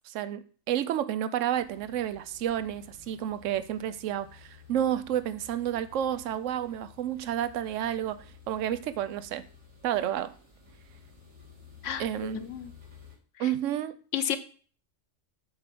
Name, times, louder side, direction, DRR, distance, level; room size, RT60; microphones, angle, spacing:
voice 1, 0.1-9.5 9.8-10.3 12.0-12.6 13.4-14.0, right 11 dB, 85° right, 1.0 m, -30 dB
sound 1, 1.5-13.2, left 6 dB, 65° right, 2.8 m, -54 dB
voice 2, 11.8-12.7 13.4-13.5 14.1-14.4, left 9 dB, 75° left, 1.1 m, -32 dB
8.4 x 4.9 x 6.0 m
omnidirectional pair, 1.3 m